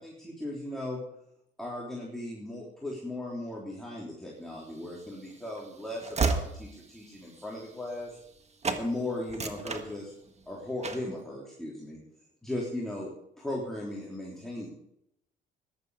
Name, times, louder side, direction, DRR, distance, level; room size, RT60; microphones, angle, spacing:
voice 1, 0.0-1.0 1.6-8.1 8.8-10.1 10.5-12.0 12.4-13.1 13.4-14.7, left 1 dB, ahead, -5 dB, 3.4 m, -37 dB
Train / Slam, 4.7-8.4 8.6-8.9 9.2-10.4 10.8-11.2, right 4 dB, 35° right, 1.6 m, -33 dB
15.0 x 11.0 x 4.8 m, 0.79 s
cardioid pair, 90°, 20 cm